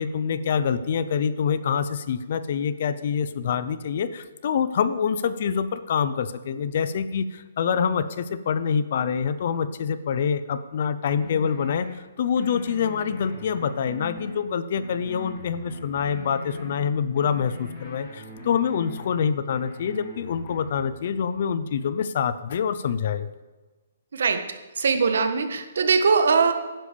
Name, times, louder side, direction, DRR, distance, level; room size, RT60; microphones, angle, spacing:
voice 1, 0.0-23.3, left 7 dB, 35° left, 14 dB, 0.6 m, -26 dB
sound 1, 11.2-11.9 12.4-14.4 14.8-16.7 17.2-19.2 19.6-20.8, left 2 dB, 20° left, 3.1 m, -40 dB
voice 2, 24.8-26.5, right 5 dB, 60° right, 7 dB, 1.6 m, -21 dB
11.5 x 10.5 x 6.9 m, 1.2 s
hypercardioid pair, 180°, 0 cm